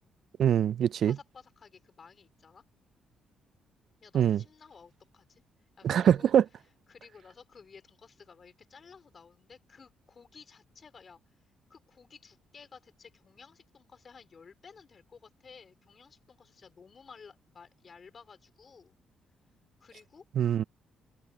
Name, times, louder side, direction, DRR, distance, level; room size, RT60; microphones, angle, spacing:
voice 1, 0.4-1.2 4.1-4.4 5.8-6.4 20.4-20.6, right 9 dB, 65° right, 0.3 m, -23 dB
voice 2, 1.0-2.6 4.0-5.4 5.8-6.3 6.9-11.2 11.7-19.0 19.8-20.2, left 5 dB, 40° left, 4.2 m, -54 dB
cardioid pair, 90°, 0 cm